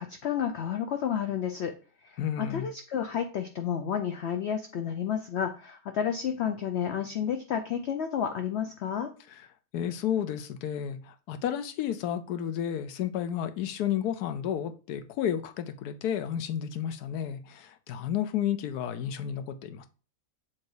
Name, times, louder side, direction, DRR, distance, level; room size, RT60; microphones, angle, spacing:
voice 1, 0.0-1.7 2.0-9.1, left 8 dB, 60° left, 0.7 m, -31 dB
voice 2, 2.2-2.7 9.3-9.5 9.7-19.9, left 9 dB, 85° left, 1.2 m, -32 dB
7.5 x 2.8 x 4.7 m
omnidirectional pair, 1.7 m